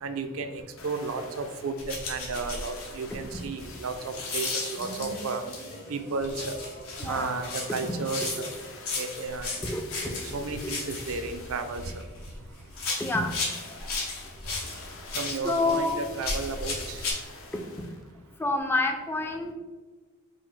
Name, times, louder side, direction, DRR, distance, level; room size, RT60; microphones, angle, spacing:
voice 1, 0.0-5.4 5.9-6.6 7.0-8.5 8.9-9.6 10.3-12.0 15.1-17.1, right 4 dB, 70° right, 8 dB, 0.4 m, -33 dB
sound 1, 0.6-1.9 2.3-5.9 6.9-11.9 13.2-18.1 18.6-18.7, left 3 dB, 65° left, 0.6 m, -47 dB
sound 2, 1.8-5.8 6.2-12.4 12.7-17.1, left 3 dB, 80° left, 1.0 m, -35 dB
sound 3, 4.7-8.8, equal, 45° left, 1.2 m, -45 dB
voice 2, 7.0-7.4 9.6-10.2 13.0-13.3 15.3-16.0 18.4-19.5, left 2 dB, 10° left, 4 dB, 0.3 m, -28 dB
5.0 x 2.0 x 3.7 m, 1.3 s
head